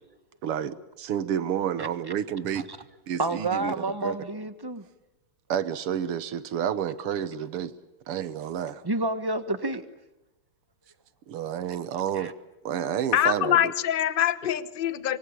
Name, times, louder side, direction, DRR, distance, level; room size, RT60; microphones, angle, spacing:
voice 1, 0.4-2.7 3.1-4.2 5.5-7.7 8.1-8.8 11.3-12.3 12.7-13.7, right 9 dB, 85° right, 14 dB, 2.1 m, -30 dB
voice 2, 3.2-4.8 8.8-9.8 12.2-12.3, right 2 dB, 15° right, 11 dB, 1.0 m, -29 dB
voice 3, 13.1-15.2, left 11 dB, 40° left, 14 dB, 0.8 m, -24 dB
25.0 x 23.5 x 8.7 m, 0.94 s
omnidirectional pair, 2.4 m